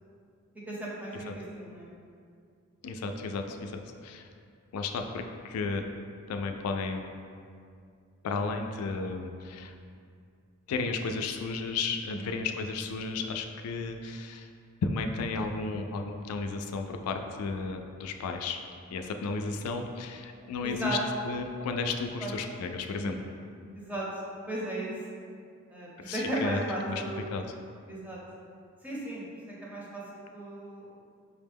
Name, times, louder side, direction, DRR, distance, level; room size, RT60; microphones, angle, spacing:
voice 1, 0.7-1.9 12.1-12.4 20.6-21.0 22.2-22.4 22.9-23.3 23.7-24.0 24.5-24.9 25.7-27.3 27.9-28.2 28.8-30.9, right 1 dB, 5° right, -6 dB, 0.7 m, -36 dB
voice 2, 2.8-4.3 4.7-5.8 6.3-7.0 8.2-9.8 10.7-14.5 14.8-18.6 18.9-21.0 21.2-23.2 26.0-26.6 26.9-27.0 27.3-27.4, left 4 dB, 85° left, 5 dB, 0.3 m, -33 dB
4.9 x 2.1 x 3.4 m, 2.3 s
head